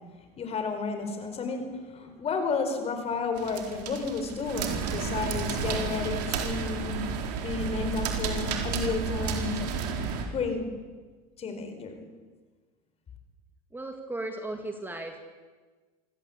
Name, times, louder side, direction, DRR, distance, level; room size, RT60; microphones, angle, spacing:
voice 1, 0.4-7.0 7.4-9.6 10.3-10.7 11.4-12.0, left 4 dB, 30° left, 7 dB, 4.6 m, -32 dB
sound 1, 3.4-10.3, right 6 dB, 85° right, 4.2 m, -31 dB
voice 2, 13.7-15.2, right 2 dB, 10° right, 4 dB, 2.0 m, -36 dB
26.0 x 17.5 x 8.5 m, 1.4 s
supercardioid pair, 125°, 20 cm